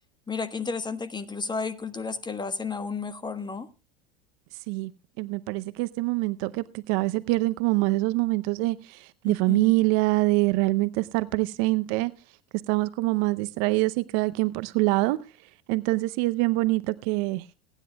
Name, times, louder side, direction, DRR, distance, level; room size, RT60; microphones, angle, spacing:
voice 1, 0.3-3.7 9.3-9.8, left 5 dB, 15° left, 1.1 m, -32 dB
voice 2, 5.2-12.1 12.7-15.2 15.7-17.4, right 21 dB, 55° right, 0.7 m, -25 dB
28.0 x 10.0 x 2.3 m
hypercardioid pair, 90°, 29 cm